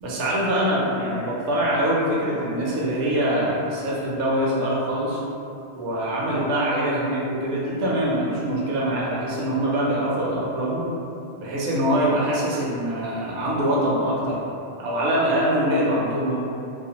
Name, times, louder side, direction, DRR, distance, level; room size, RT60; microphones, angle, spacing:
voice 1, 0.0-5.2 5.7-10.8 11.3-14.4 14.8-16.4, right 1 dB, 70° right, -5 dB, 0.8 m, -24 dB
2.4 x 2.0 x 2.7 m, 2.6 s
omnidirectional pair, 1.2 m